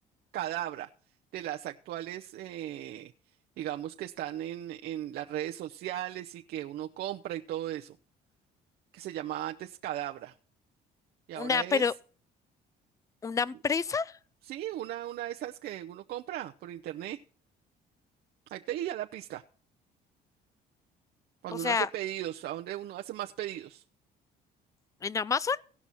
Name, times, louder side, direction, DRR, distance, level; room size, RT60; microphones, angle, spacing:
voice 1, 0.3-0.9 1.3-3.1 3.6-8.0 8.9-10.3 11.3-11.8 14.4-17.2 18.5-19.4 21.4-23.8, right 13 dB, 65° right, 0.6 m, -37 dB
voice 2, 11.4-11.9 13.2-14.1 21.6-21.9 25.0-25.6, left 5 dB, 20° left, 0.4 m, -28 dB
17.0 x 6.0 x 4.1 m
cardioid pair, 110°, 17 cm